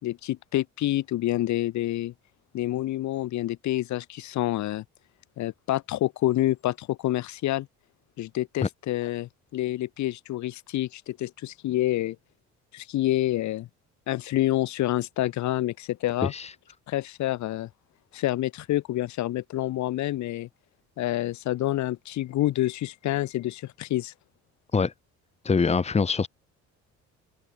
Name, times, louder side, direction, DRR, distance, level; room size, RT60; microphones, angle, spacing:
voice 1, 0.0-2.1 2.5-4.8 5.4-7.7 8.2-12.2 12.7-13.7 14.1-16.3 16.9-17.7 18.1-20.5 21.0-24.1, left 15 dB, 70° left, 6.3 m, -28 dB
voice 2, 16.2-16.5 24.7-24.9 25.4-26.3, left 5 dB, 20° left, 2.1 m, -24 dB
open air
cardioid pair, 130°, 29 cm